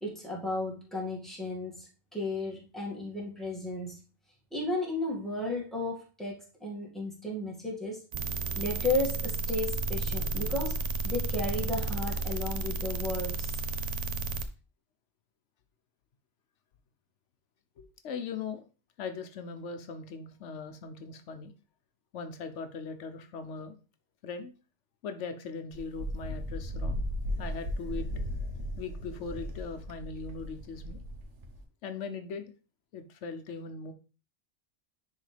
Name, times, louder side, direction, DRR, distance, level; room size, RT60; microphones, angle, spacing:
voice 1, 0.0-4.0 4.5-8.0 8.6-13.6 13.9-14.0, left 2 dB, ahead, -4 dB, 1.9 m, -34 dB
sound 1, 8.1-14.4, right 3 dB, 45° right, 0.5 m, -32 dB
voice 2, 17.8-18.6 19.0-21.5 22.1-23.8 24.2-24.5 25.0-31.0 31.8-32.4 32.9-33.9, left 5 dB, 85° left, 8 dB, 1.1 m, -40 dB
Wind, 25.7-31.6, equal, 80° right, 1.4 m, -36 dB
10.0 x 3.8 x 3.3 m, 0.34 s
omnidirectional pair, 1.2 m